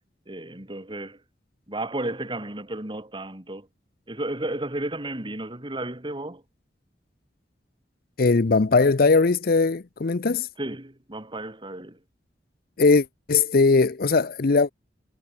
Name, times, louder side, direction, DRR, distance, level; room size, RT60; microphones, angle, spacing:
voice 1, 0.3-1.2 1.7-3.7 4.1-6.4 10.6-12.0, right 1 dB, 30° right, 2.9 m, -33 dB
voice 2, 8.2-10.5 12.8-14.7, left 4 dB, 55° left, 0.7 m, -20 dB
head